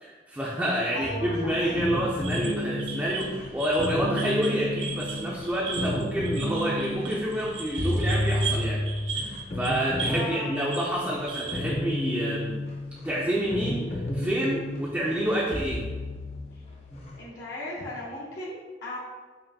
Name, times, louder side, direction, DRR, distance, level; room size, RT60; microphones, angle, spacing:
voice 1, 0.0-8.8 9.1-12.6 13.0-15.9, equal, 10° right, -4 dB, 0.3 m, -28 dB
voice 2, 0.9-1.8 10.0-10.5 17.2-19.0, left 1 dB, 75° left, -7 dB, 0.7 m, -37 dB
sound 1, 1.0-17.2, left 1 dB, 40° left, 0.6 m, -32 dB
sound 2, 2.2-10.3 10.6-11.7, right 5 dB, 90° right, 0.5 m, -37 dB
5.2 x 2.5 x 2.6 m, 1.4 s
head